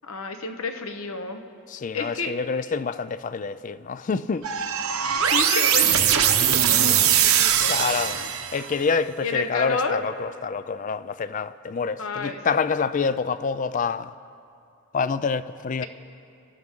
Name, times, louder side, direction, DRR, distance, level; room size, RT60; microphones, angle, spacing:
voice 1, 0.0-1.4 1.9-2.3 5.0-8.3 9.2-10.0 12.0-12.6 15.8-15.9, left 4 dB, 75° left, 1.1 m, -31 dB
voice 2, 1.7-4.4 7.7-8.2 8.5-14.1 14.9-15.8, left 5 dB, 35° left, 0.3 m, -27 dB
sound 1, 4.4-8.7, right 9 dB, 75° right, 1.0 m, -21 dB
26.5 x 13.0 x 3.7 m
head